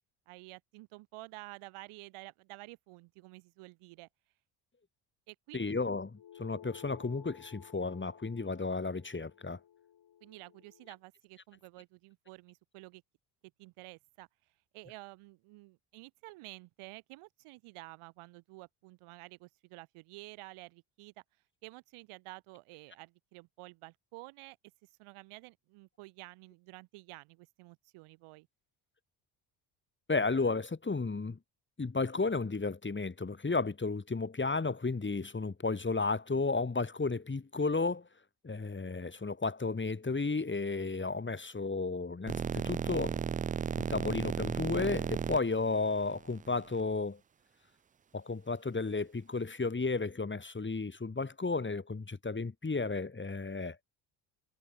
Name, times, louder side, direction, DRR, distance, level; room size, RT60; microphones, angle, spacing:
voice 1, 0.3-4.1 5.3-5.6 10.2-13.0 13.6-14.3 14.7-21.1 21.6-24.6 24.8-28.5, right 22 dB, 80° right, 7.1 m, -51 dB
voice 2, 5.5-9.6 30.1-31.4 31.8-38.1 38.4-43.2 43.8-47.2 48.1-53.8, left 3 dB, 20° left, 3.7 m, -33 dB
sound 1, 6.2-11.0, left 10 dB, 55° left, 5.4 m, -55 dB
sound 2, 42.3-46.8, right 7 dB, 20° right, 0.3 m, -34 dB
hypercardioid pair, 65°, 50 cm